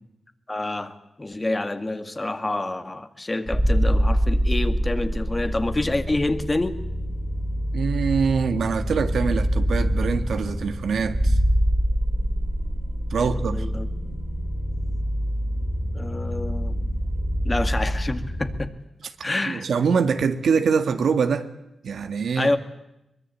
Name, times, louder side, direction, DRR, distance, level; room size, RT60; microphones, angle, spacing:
voice 1, 0.5-6.8 13.2-13.9 15.9-16.8 17.4-18.7 19.2-19.7 22.4-22.6, left 2 dB, 20° left, 2.1 m, -27 dB
sound 1, 3.5-18.7, equal, 10° right, 3.2 m, -25 dB
voice 2, 7.7-11.4 13.1-13.7 19.5-21.5 21.8-22.5, right 6 dB, 75° right, 1.9 m, -24 dB
23.5 x 22.0 x 8.5 m
cardioid pair, 90°, 0 cm